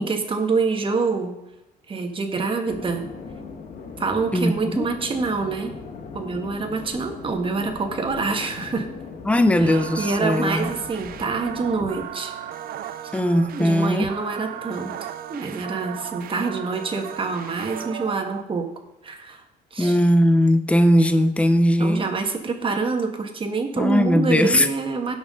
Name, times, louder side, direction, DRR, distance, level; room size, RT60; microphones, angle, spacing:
voice 1, 0.0-1.3 1.9-3.1 4.0-5.7 6.1-8.9 9.6-12.3 13.0-13.1 13.5-18.7 19.0-19.4 19.7-20.0 21.8-25.2, right 4 dB, 30° right, 4 dB, 1.7 m, -26 dB
sound 1, 2.7-12.1, left 5 dB, 50° left, 1.5 m, -38 dB
voice 2, 4.3-4.9 9.3-10.7 13.1-14.1 19.8-22.0 23.8-24.7, equal, 5° left, 8 dB, 0.8 m, -19 dB
sound 2, 9.6-18.4, right 10 dB, 60° right, 0.6 m, -36 dB
16.5 x 6.0 x 3.8 m, 0.92 s
cardioid pair, 110°, 17 cm